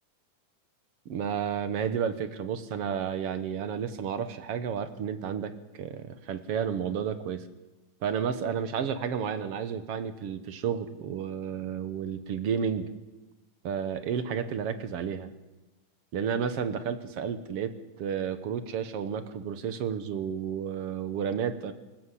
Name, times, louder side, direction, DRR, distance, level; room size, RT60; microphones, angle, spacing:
voice 1, 1.1-7.5 8.0-12.9 13.6-15.3 16.1-17.7 18.0-21.7, right 7 dB, 60° right, 11 dB, 1.8 m, -31 dB
25.5 x 14.5 x 8.3 m, 1.1 s
omnidirectional pair, 3.7 m